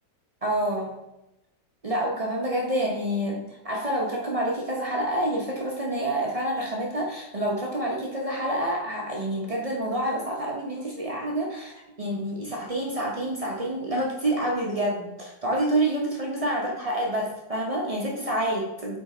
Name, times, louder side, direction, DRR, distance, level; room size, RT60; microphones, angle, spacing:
voice 1, 0.4-1.0 1.8-19.0, right 1 dB, 65° right, -2 dB, 0.3 m, -28 dB
5.9 x 4.4 x 4.2 m, 0.92 s
omnidirectional pair, 2.1 m